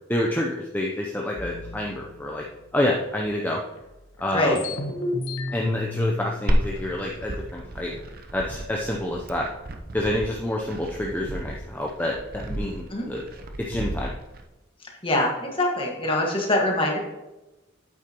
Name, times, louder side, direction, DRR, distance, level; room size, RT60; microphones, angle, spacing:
voice 1, 0.1-2.4 2.7-3.6 4.2-4.6 5.5-7.9 8.3-9.5 9.9-13.2 13.7-14.1, left 1 dB, 10° left, -2 dB, 0.6 m, -28 dB
sound 1, 1.4-3.3 3.8-3.9 4.1-7.7, left 2 dB, 85° left, 1.3 m, -33 dB
Glass, 6.5-14.4, right 1 dB, 50° right, 0.7 m, -31 dB
voice 2, 15.0-17.0, left 1 dB, 25° left, 0 dB, 1.6 m, -23 dB
8.9 x 7.9 x 3.0 m, 1.0 s
head